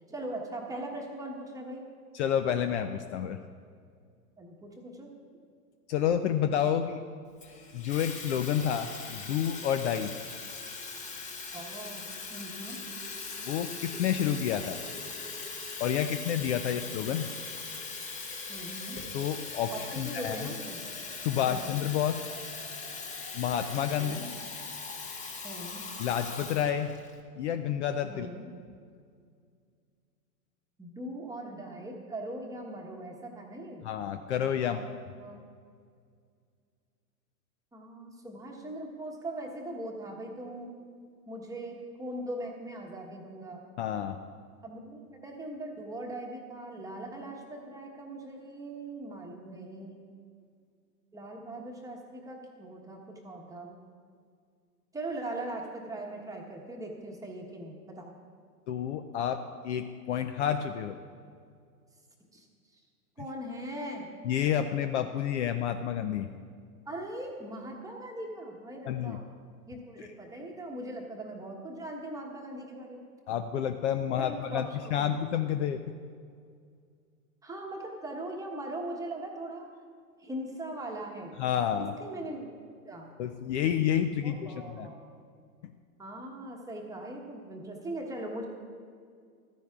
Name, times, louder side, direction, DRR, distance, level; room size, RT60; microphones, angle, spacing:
voice 1, 0.1-1.9 4.4-5.1 11.5-12.8 16.6-16.8 18.5-19.0 19.7-20.8 21.3-21.6 24.0-24.3 25.4-25.9 28.1-28.5 30.8-33.8 34.6-34.9 35.2-35.4 37.7-40.7 41.3-43.6 44.6-50.0 51.1-53.8 54.9-58.1 62.3-62.4 62.7-62.8 63.2-64.1 66.9-69.2 69.7-73.1 74.2-75.1 77.4-79.7 80.2-81.3 81.8-82.5 82.8-83.1 84.2-85.0 86.0-88.5, right 1 dB, 5° right, 0 dB, 1.1 m, -40 dB
voice 2, 2.1-3.4 5.9-7.0 7.7-10.1 13.4-14.8 15.8-17.3 19.1-20.5 21.2-22.2 23.3-24.2 26.0-26.9 27.4-28.3 33.8-34.8 43.8-44.2 58.7-61.0 64.2-66.3 68.9-69.2 73.3-75.8 81.4-81.9 83.2-84.9, left 9 dB, 45° left, 8 dB, 0.5 m, -29 dB
Water tap faucet / Fill (with liquid), 7.4-27.2, left 4 dB, 15° left, 0.9 m, -40 dB
14.5 x 13.0 x 2.4 m, 2.1 s
hypercardioid pair, 125°, 48 cm